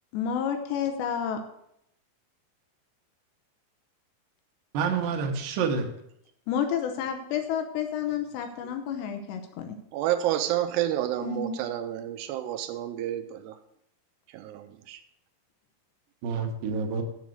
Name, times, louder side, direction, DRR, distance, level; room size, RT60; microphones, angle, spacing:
voice 1, 0.1-1.4 6.5-9.8 11.2-11.6, left 8 dB, 80° left, 6 dB, 3.0 m, -30 dB
voice 2, 4.7-5.9 16.2-17.0, right 5 dB, 65° right, 4 dB, 2.5 m, -28 dB
voice 3, 9.9-13.6 14.3-15.0, right 12 dB, 80° right, 9 dB, 2.7 m, -29 dB
7.4 x 7.2 x 7.7 m, 0.75 s
omnidirectional pair, 5.1 m